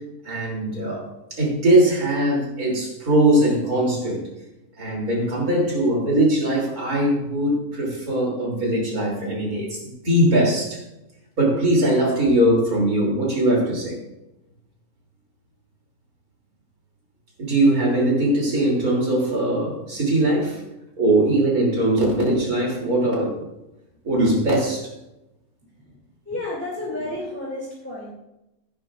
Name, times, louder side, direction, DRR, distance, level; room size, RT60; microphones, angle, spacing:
voice 1, 0.2-4.3 4.8-10.8 11.4-14.0 17.4-20.6 21.0-23.4 24.0-24.9, right 1 dB, 80° right, -2 dB, 3.6 m, -21 dB
voice 2, 26.3-28.1, left 2 dB, 10° left, -5 dB, 2.7 m, -31 dB
16.0 x 9.8 x 2.5 m, 0.92 s
omnidirectional pair, 1.5 m